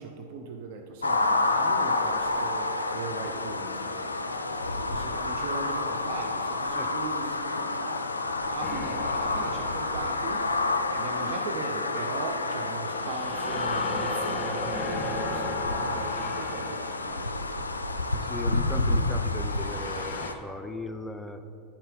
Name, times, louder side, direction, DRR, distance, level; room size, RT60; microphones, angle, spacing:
voice 1, 0.0-4.1 4.7-8.1 8.5-10.5 10.9-17.3, right 4 dB, 50° right, 4 dB, 0.6 m, -39 dB
sound 1, 1.0-20.3, left 2 dB, 80° left, 0.3 m, -29 dB
sound 2, 8.6-11.1 11.7-18.1 19.2-20.3, left 3 dB, 35° left, 0.9 m, -37 dB
voice 2, 18.1-21.4, left 2 dB, 5° left, 7 dB, 0.4 m, -38 dB
9.8 x 5.3 x 3.9 m, 2.7 s
figure-of-eight pair, 90°, 0 cm